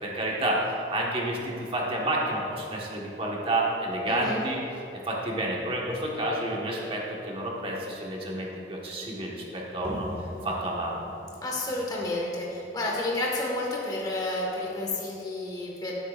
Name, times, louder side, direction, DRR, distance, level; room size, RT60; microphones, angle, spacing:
voice 1, 0.0-4.6 4.9-10.1 10.4-11.0, right 1 dB, 30° right, -3 dB, 1.4 m, -30 dB
voice 2, 4.1-4.4 11.4-15.9, left 2 dB, 20° left, -3 dB, 1.5 m, -30 dB
sound 1, 9.8-15.3, equal, 15° right, 1.7 m, -43 dB
15.0 x 8.0 x 2.5 m, 2.9 s
head